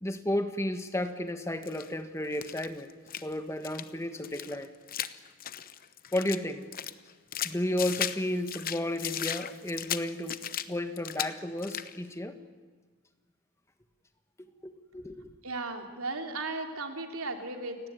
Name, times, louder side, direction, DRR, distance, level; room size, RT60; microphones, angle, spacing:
voice 1, 0.0-2.9 3.2-4.7 6.1-6.6 7.4-10.4 10.7-12.4 14.6-15.3, left 1 dB, 15° left, 8 dB, 1.5 m, -33 dB
sound 1, 1.6-1.9 2.3-3.3 3.6-3.9 4.2-6.4 6.7-8.2 8.5-10.7 11.0-11.3 11.6-12.0, left 10 dB, 40° left, 0.9 m, -36 dB
voice 2, 15.4-17.8, right 3 dB, 75° right, 4 dB, 3.1 m, -36 dB
30.0 x 18.0 x 9.6 m, 1.5 s
head